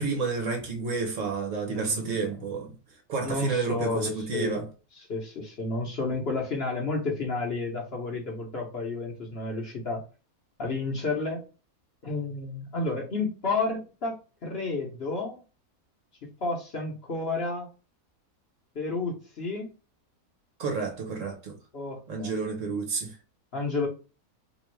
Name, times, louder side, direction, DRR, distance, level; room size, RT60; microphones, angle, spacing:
voice 1, 0.0-2.8 3.1-4.7 20.6-21.6 22.1-23.2, right 4 dB, 60° right, 1.2 m, -30 dB
voice 2, 1.7-2.1 3.2-4.6 5.1-10.0 10.6-11.4 12.0-15.4 16.4-17.7 18.7-19.7 21.7-22.3 23.5-23.9, left 3 dB, 45° left, 1.0 m, -31 dB
3.5 x 3.0 x 3.1 m
omnidirectional pair, 1.6 m